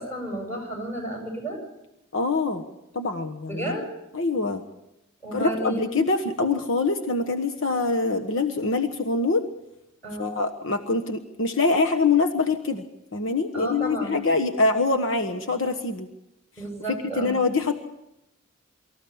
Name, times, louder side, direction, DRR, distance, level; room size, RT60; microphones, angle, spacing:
voice 1, 0.0-1.6 3.5-3.9 5.2-5.9 10.0-10.3 13.5-14.2 16.6-17.4, right 1 dB, 10° left, 2 dB, 7.1 m, -32 dB
voice 2, 2.1-2.6 2.9-3.8 4.1-4.6 5.3-9.4 10.2-12.8 13.1-16.1 17.2-17.7, left 3 dB, 65° left, 6 dB, 1.3 m, -24 dB
24.5 x 14.5 x 8.6 m, 0.89 s
head